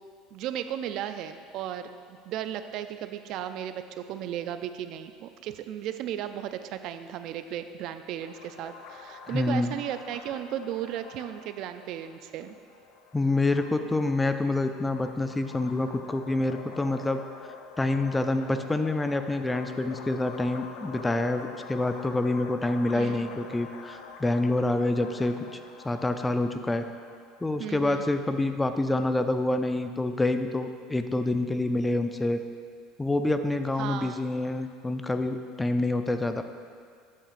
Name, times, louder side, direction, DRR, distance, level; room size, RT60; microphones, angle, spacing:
voice 1, 0.3-12.6 22.9-23.2 27.6-28.1 33.8-34.2, right 10 dB, 60° right, 10 dB, 0.3 m, -35 dB
sound 1, 8.2-27.5, left 4 dB, 70° left, 0.5 m, -46 dB
voice 2, 9.3-9.8 13.1-17.2 17.8-25.6 25.8-26.9 27.4-32.4 33.0-36.4, left 2 dB, 10° left, 8 dB, 0.4 m, -27 dB
8.7 x 8.2 x 2.5 m, 2.1 s
supercardioid pair, 115°, 0 cm